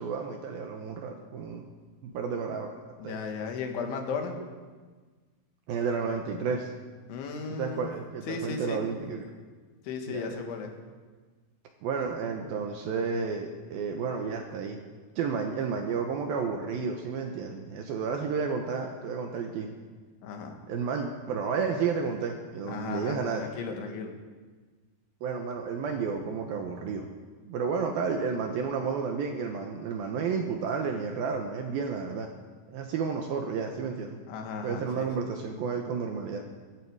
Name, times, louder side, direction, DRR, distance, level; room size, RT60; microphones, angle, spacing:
voice 1, 0.0-1.7 2.0-2.7 3.0-3.2 5.7-6.7 7.5-9.3 10.1-10.4 11.8-14.8 15.2-19.7 20.7-23.5 25.2-27.1 27.5-32.3 32.7-34.2 34.6-36.4, right 5 dB, 70° right, 3 dB, 2.3 m, -31 dB
voice 2, 3.0-4.4 7.1-7.9 8.3-8.8 9.9-10.7 20.2-20.6 22.7-24.1 34.3-35.1, left 5 dB, 85° left, 3 dB, 4.1 m, -35 dB
22.5 x 12.5 x 4.8 m, 1.4 s
omnidirectional pair, 5.3 m